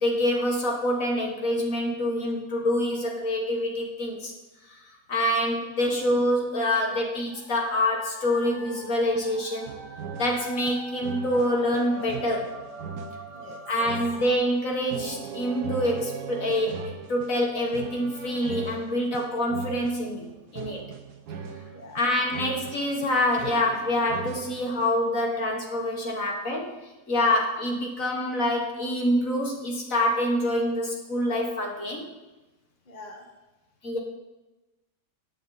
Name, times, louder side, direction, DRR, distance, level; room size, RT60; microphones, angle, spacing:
voice 1, 0.0-4.3 5.1-9.7 10.2-12.5 13.7-20.8 21.9-26.7 27.1-32.1 33.8-34.0, left 1 dB, 55° left, 0 dB, 2.0 m, -26 dB
voice 2, 6.6-7.0 13.3-13.6 21.6-22.0 25.3-25.4 26.4-26.6 27.2-27.3 32.8-33.3, left 3 dB, 25° left, 1 dB, 1.6 m, -47 dB
sound 1, 7.3-14.4, right 3 dB, 85° right, 2.5 m, -44 dB
sound 2, 9.7-25.1, right 6 dB, 70° right, 1.5 m, -40 dB
16.0 x 9.4 x 4.1 m, 1.1 s
omnidirectional pair, 1.8 m